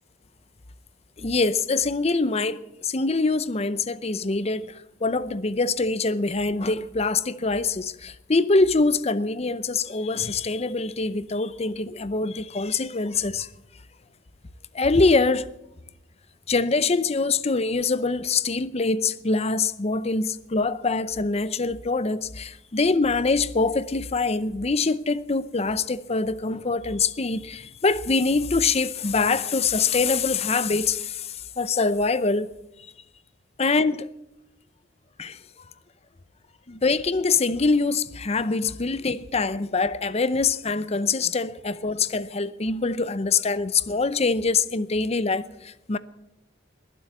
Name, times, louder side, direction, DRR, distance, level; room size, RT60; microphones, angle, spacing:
voice 1, 1.2-13.5 14.7-15.5 16.5-32.5 33.6-34.1 35.2-35.4 36.7-46.0, left 3 dB, 35° left, 0.7 m, -24 dB
21.0 x 7.7 x 8.5 m
head